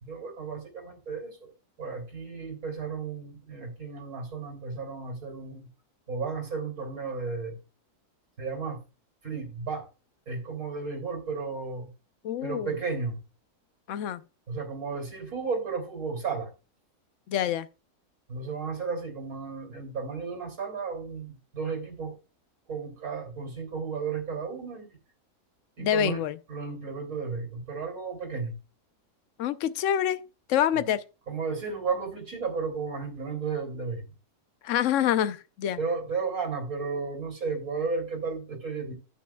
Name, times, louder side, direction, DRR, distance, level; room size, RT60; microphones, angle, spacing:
voice 1, 0.0-1.5 1.8-5.7 6.1-7.6 8.4-8.8 9.2-9.9 10.3-11.9 12.4-13.2 14.5-16.5 18.3-22.2 22.7-24.9 25.8-26.2 26.5-28.5 30.7-30.8 31.3-34.0 35.8-38.9, right 5 dB, 60° right, 3.4 m, -33 dB
voice 2, 12.2-12.7 13.9-14.2 17.3-17.7 25.8-26.4 29.4-30.2 30.5-31.0 34.6-35.8, left 10 dB, 60° left, 1.0 m, -26 dB
11.5 x 9.5 x 2.3 m
omnidirectional pair, 1.7 m